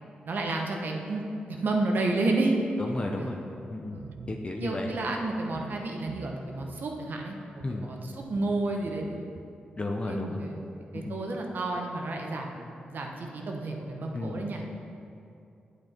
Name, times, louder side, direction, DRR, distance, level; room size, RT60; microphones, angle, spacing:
voice 1, 0.2-2.5 3.2-3.4 3.9-4.2 4.6-9.2 10.0-10.6 10.9-14.6, right 2 dB, 70° right, 1 dB, 1.2 m, -31 dB
voice 2, 2.8-3.4 3.7-4.0 4.3-4.9 7.6-7.9 9.8-10.4 10.9-11.2 14.1-14.4, left 2 dB, 35° left, 2 dB, 0.7 m, -33 dB
sound 1, 3.9-4.4 4.9-5.0 5.5-5.8 6.1-6.9 7.6-7.7 8.2-9.4, right 5 dB, 85° right, 0.4 m, -45 dB
8.3 x 8.2 x 4.5 m, 2.6 s
cardioid pair, 65°, 3 cm